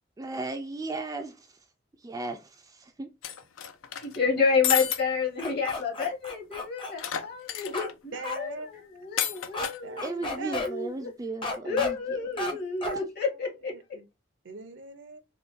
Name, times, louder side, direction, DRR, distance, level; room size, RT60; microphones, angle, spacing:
voice 1, 0.2-1.6 2.0-3.1 10.0-12.6, right 2 dB, 20° right, 0.3 m, -36 dB
sound 1, 3.2-4.2 4.6-5.0 5.4-5.5 5.7-5.8 7.0-7.9 9.2-9.8, left 10 dB, 85° left, 0.5 m, -30 dB
voice 2, 4.0-10.1 10.5-11.1 11.6-13.8, left 5 dB, 55° left, 1.3 m, -29 dB
sound 2, 5.4-6.9 7.7-7.9 8.2-8.4 9.5-9.7 10.0-10.7 11.4-11.9 12.4-12.5 12.8-13.0, left 2 dB, 25° left, 0.6 m, -33 dB
voice 3, 8.1-8.7 9.8-10.9 12.1-12.4 12.8-13.4 13.7-14.1 14.4-15.2, right 3 dB, 70° right, 0.6 m, -41 dB
3.7 x 2.2 x 2.5 m
head